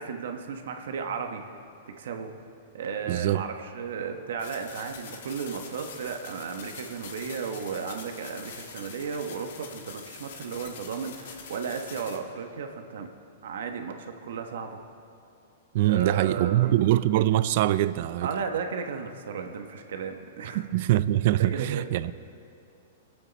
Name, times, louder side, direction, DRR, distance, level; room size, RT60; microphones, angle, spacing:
voice 1, 0.0-1.4 2.0-2.3 2.7-13.1 13.4-14.8 15.8-16.8 18.2-20.6 21.4-21.8, right 6 dB, 75° right, 5 dB, 1.2 m, -34 dB
voice 2, 3.1-3.4 15.7-18.3 20.5-22.1, right 14 dB, 55° right, 16 dB, 0.4 m, -23 dB
sound 1, 4.4-12.2, left 6 dB, 70° left, 1.4 m, -44 dB
25.0 x 8.6 x 4.1 m, 2.5 s
hypercardioid pair, 145°, 0 cm